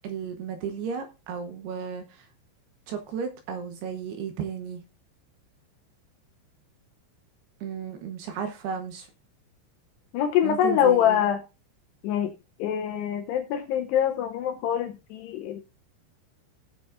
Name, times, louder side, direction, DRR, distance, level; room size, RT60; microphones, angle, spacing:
voice 1, 0.0-2.0 2.9-4.8 7.6-9.1 10.4-11.2, right 6 dB, 70° right, 2.7 m, -34 dB
voice 2, 10.1-11.4 12.0-12.3 12.6-15.6, left 10 dB, 80° left, 2.4 m, -24 dB
17.0 x 6.9 x 2.4 m
omnidirectional pair, 5.5 m